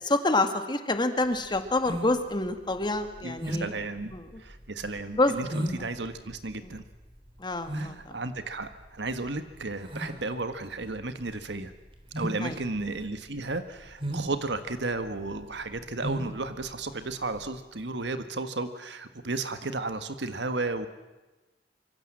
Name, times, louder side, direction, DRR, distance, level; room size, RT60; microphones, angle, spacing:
voice 1, 0.0-3.7 4.1-4.2 5.2-5.3 6.6-6.7 7.4-8.0 12.4-12.5, left 2 dB, 25° left, 8 dB, 2.0 m, -27 dB
sound 1, 1.2-17.6, equal, 30° right, 3.5 m, -37 dB
voice 2, 3.2-4.1 4.4-6.8 7.7-11.7 12.1-20.9, right 3 dB, 75° right, 10 dB, 1.6 m, -34 dB
25.5 x 24.0 x 7.6 m, 1.2 s
head